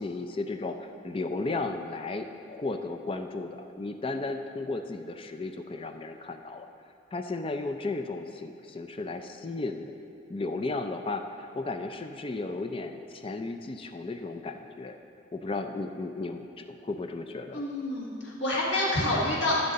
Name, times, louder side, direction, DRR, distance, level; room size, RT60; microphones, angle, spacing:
voice 1, 0.0-6.7 7.1-9.9 10.3-15.0 15.3-17.6, left 3 dB, 25° left, 6 dB, 0.4 m, -34 dB
voice 2, 17.5-19.7, left 1 dB, 65° left, -5 dB, 1.7 m, -28 dB
13.0 x 6.6 x 4.1 m, 2.8 s
head